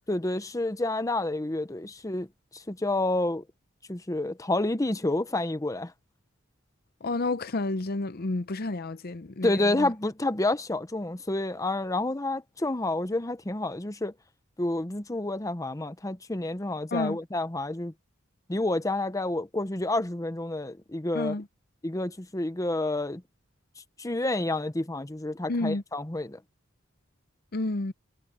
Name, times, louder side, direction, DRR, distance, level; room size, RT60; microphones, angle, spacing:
voice 1, 0.1-2.3 2.5-3.4 3.9-5.9 9.4-14.1 14.6-17.9 18.5-21.4 21.8-23.2 24.0-26.4, left 2 dB, 15° left, 0.8 m, -29 dB
voice 2, 7.0-9.9 16.9-17.2 21.1-21.5 25.5-25.8 27.5-27.9, left 2 dB, 50° left, 0.7 m, -30 dB
head